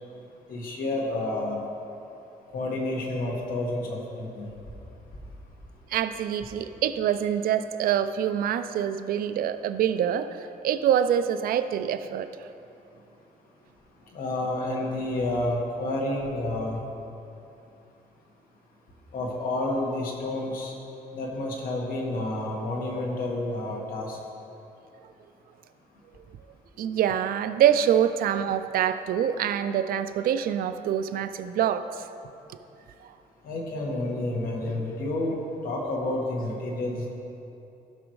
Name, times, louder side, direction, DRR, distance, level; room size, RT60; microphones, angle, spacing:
voice 1, 0.5-1.6 2.5-4.5 14.1-16.8 19.1-20.7 21.1-24.2 33.4-35.4 35.6-37.1, left 2 dB, 65° left, -1 dB, 1.7 m, -29 dB
voice 2, 5.9-12.3 26.8-31.9, right 9 dB, 75° right, 11 dB, 0.4 m, -25 dB
15.5 x 6.0 x 3.2 m, 2.8 s
cardioid pair, 145°, 15 cm